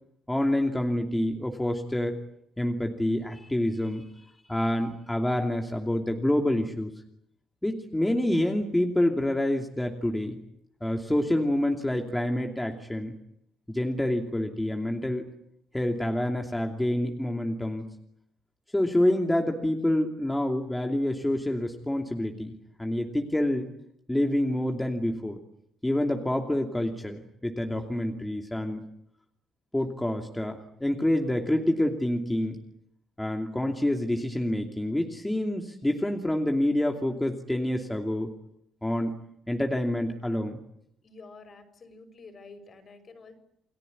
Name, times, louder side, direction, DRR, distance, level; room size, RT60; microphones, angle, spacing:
voice 1, 0.3-2.2 2.6-4.1 4.5-6.9 7.6-10.4 10.8-13.1 13.7-15.3 15.7-17.8 18.7-22.5 22.8-23.7 24.1-25.4 25.8-28.8 29.7-32.6 33.2-38.3 38.8-39.2 39.5-40.6, left 1 dB, 10° left, 2 dB, 2.8 m, -27 dB
voice 2, 41.0-43.3, left 3 dB, 45° left, 10 dB, 6.1 m, -49 dB
29.5 x 18.5 x 9.8 m, 0.77 s
cardioid pair, 90°, 0 cm